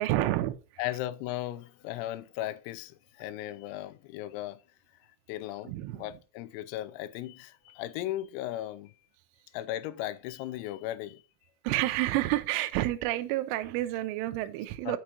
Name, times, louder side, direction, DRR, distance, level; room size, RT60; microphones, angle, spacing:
voice 1, 0.0-0.8 5.7-6.1 11.6-15.0, right 16 dB, 85° right, 2.9 m, -29 dB
voice 2, 0.8-4.6 5.3-5.7 6.0-8.9 9.5-11.2 14.9-15.0, left 14 dB, 85° left, 3.3 m, -36 dB
6.3 x 6.3 x 4.5 m
omnidirectional pair, 6.0 m